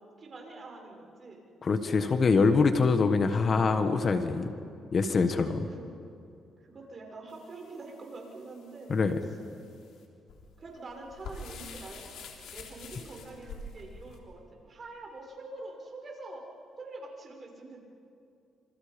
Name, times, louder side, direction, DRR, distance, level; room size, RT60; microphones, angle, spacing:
voice 1, 0.0-1.4 5.4-5.9 6.6-8.9 10.6-12.1 12.4-16.4 16.8-17.8, right 2 dB, 40° right, 1 dB, 6.0 m, -45 dB
voice 2, 1.6-4.5 4.9-5.7 8.9-9.2, left 4 dB, 45° left, 8 dB, 1.5 m, -24 dB
sound 1, 7.3-14.2, left 3 dB, 80° left, 3.5 m, -47 dB
27.5 x 27.0 x 5.3 m, 2.5 s
cardioid pair, 90°, 0 cm